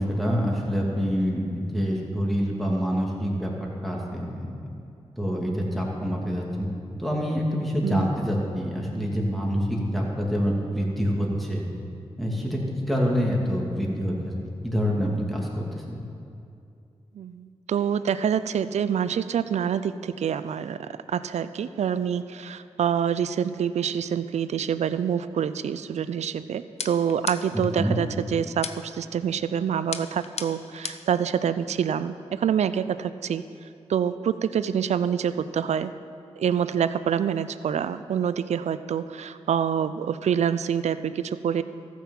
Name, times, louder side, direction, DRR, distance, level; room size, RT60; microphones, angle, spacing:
voice 1, 0.0-3.5 3.8-4.7 5.2-6.7 7.0-11.7 12.2-14.4 14.6-16.1 27.8-28.0, equal, ahead, -3 dB, 2.5 m, -26 dB
voice 2, 17.2-33.4 33.9-35.9 36.4-41.6, right 8 dB, 80° right, 13 dB, 0.4 m, -26 dB
sound 1, 26.8-27.7 28.6-29.1 29.9-31.2, left 6 dB, 70° left, 0.6 m, -35 dB
14.0 x 6.1 x 7.3 m, 2.6 s
cardioid pair, 55°, 11 cm